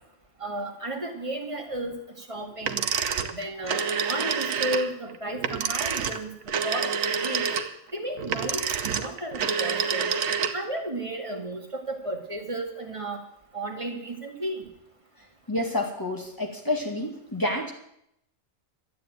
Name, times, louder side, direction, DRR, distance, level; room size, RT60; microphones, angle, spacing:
voice 1, 0.4-2.9 3.3-6.3 6.6-7.5 7.9-10.1 10.5-13.2 13.5-14.7, right 1 dB, 25° right, 3 dB, 2.1 m, -33 dB
sound 1, 2.6-10.8, right 6 dB, 80° right, 1.3 m, -28 dB
voice 2, 15.5-17.7, left 2 dB, 15° left, 2 dB, 2.1 m, -29 dB
12.5 x 8.4 x 9.1 m, 0.77 s
omnidirectional pair, 1.4 m